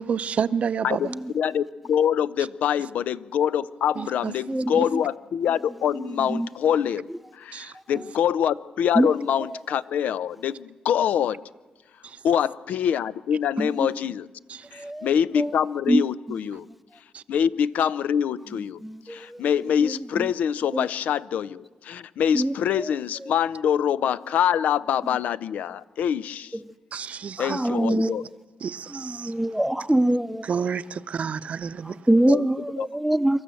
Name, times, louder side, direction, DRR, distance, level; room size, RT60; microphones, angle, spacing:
voice 1, 0.0-1.0 4.0-4.3 4.7-4.9 7.5-7.7 14.5-14.6 17.1-17.2 26.9-27.6 27.9-28.1 28.6-29.3 30.5-31.9, right 7 dB, 60° right, 0.7 m, -29 dB
voice 2, 1.3-7.0 7.3-11.4 12.2-14.3 14.7-16.7 17.3-18.8 19.1-26.6 27.4-28.2 32.3-32.5 32.8-32.9, left 9 dB, 85° left, 0.6 m, -25 dB
voice 3, 4.5-5.0 6.0-6.5 8.9-9.1 13.6-13.7 14.8-15.1 15.4-15.5 15.9-16.0 18.8-19.4 19.8-20.3 20.7-20.8 22.3-22.9 27.4-28.2 28.9-30.5 31.9-33.4, right 1 dB, 5° right, 0.7 m, -24 dB
26.0 x 14.0 x 7.7 m
cardioid pair, 85°, 3 cm